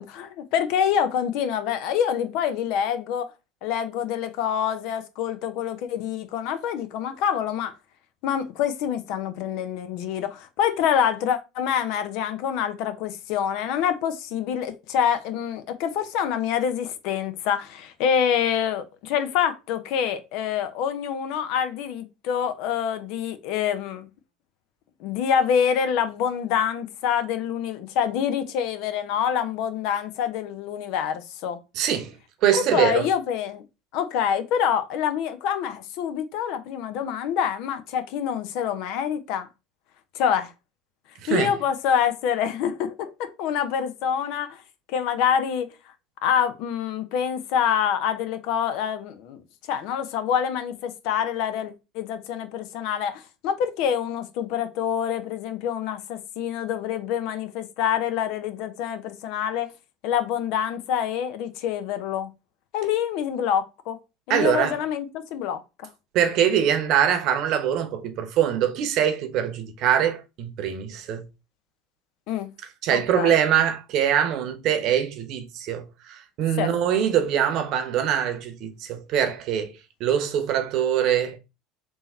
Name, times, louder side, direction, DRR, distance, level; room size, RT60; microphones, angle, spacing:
voice 1, 0.0-3.3 3.6-7.7 8.2-24.1 25.0-31.6 32.5-33.6 33.9-39.5 40.1-40.5 41.3-44.6 44.9-45.7 46.2-49.4 49.7-59.7 60.0-62.3 62.7-64.0 64.3-65.6 72.3-72.5 72.9-73.3 76.6-76.7, left 8 dB, 65° left, 0.7 m, -26 dB
voice 2, 31.7-32.2 32.4-33.0 41.2-41.5 64.3-64.8 66.1-71.2 72.8-79.7 80.0-81.4, right 9 dB, 55° right, 0.9 m, -23 dB
3.6 x 2.9 x 4.2 m
hypercardioid pair, 85°, 0 cm